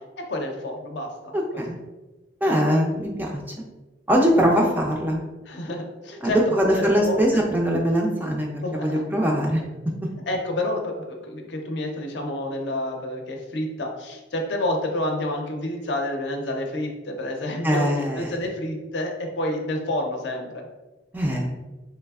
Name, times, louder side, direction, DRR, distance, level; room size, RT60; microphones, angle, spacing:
voice 1, 0.3-1.6 5.5-7.4 8.6-9.0 10.3-17.8 18.2-20.7, left 1 dB, 65° left, 3 dB, 0.5 m, -29 dB
voice 2, 1.3-1.8 2.4-3.4 4.1-5.2 6.2-9.6 17.6-18.3 21.1-21.6, equal, 10° right, 0 dB, 0.3 m, -22 dB
3.3 x 3.1 x 2.3 m, 1.1 s
head